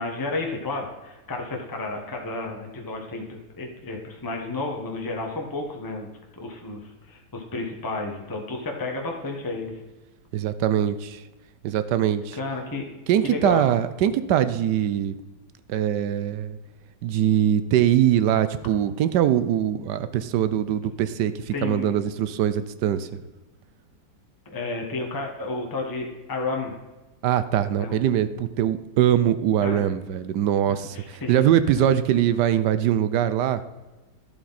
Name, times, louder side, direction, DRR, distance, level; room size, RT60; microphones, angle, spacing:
voice 1, 0.0-6.1 6.4-9.8 12.4-12.9 13.2-13.7 21.5-21.9 24.4-26.7 27.8-28.3 29.6-29.8 30.7-31.5, left 3 dB, 15° left, 1 dB, 1.1 m, -32 dB
voice 2, 10.3-11.2 11.6-12.4 13.1-15.2 15.7-16.6 17.0-23.1 27.2-33.6, right 10 dB, 75° right, 13 dB, 1.2 m, -22 dB
12.0 x 7.7 x 4.1 m, 1.1 s
omnidirectional pair, 1.9 m